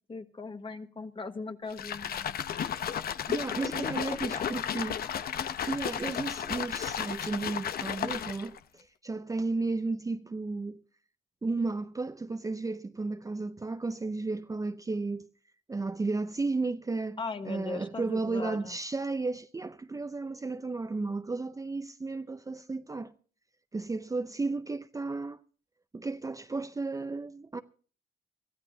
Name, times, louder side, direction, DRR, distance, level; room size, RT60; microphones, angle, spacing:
voice 1, 0.1-2.4 3.8-4.5 17.2-18.8, left 3 dB, 30° left, 1.4 m, -39 dB
sound 1, 1.7-8.6, left 9 dB, 60° left, 0.8 m, -34 dB
voice 2, 3.3-5.0 5.7-10.8 11.4-15.3 15.7-17.2 17.5-23.1 23.7-25.4 25.9-27.6, right 3 dB, 20° right, 0.6 m, -33 dB
23.0 x 13.5 x 2.8 m
supercardioid pair, 70°, 18 cm